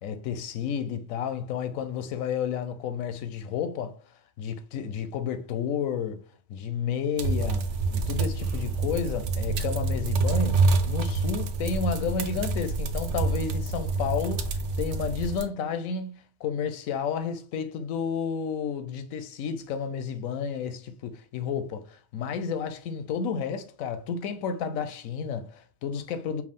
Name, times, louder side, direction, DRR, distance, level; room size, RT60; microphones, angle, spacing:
voice 1, 0.0-4.0 4.4-6.2 6.5-26.4, left 6 dB, 85° left, 1.0 m, -31 dB
sound 1, 7.2-15.4, right 3 dB, 65° right, 0.9 m, -27 dB
4.6 x 2.4 x 3.5 m
omnidirectional pair, 1.4 m